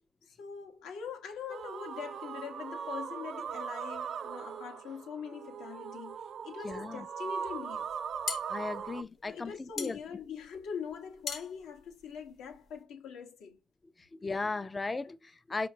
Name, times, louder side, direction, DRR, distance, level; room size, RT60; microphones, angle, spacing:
voice 1, 0.3-8.0 8.8-8.9 9.3-13.6 14.6-14.7, left 7 dB, 85° left, 1.1 m, -43 dB
sound 1, 1.5-9.0, right 7 dB, 60° right, 0.3 m, -39 dB
voice 2, 6.6-7.1 8.5-10.0 14.1-15.7, left 3 dB, 25° left, 0.3 m, -36 dB
sound 2, 7.9-12.8, left 6 dB, 60° left, 1.0 m, -41 dB
5.0 x 2.8 x 2.7 m
cardioid pair, 90°, 0 cm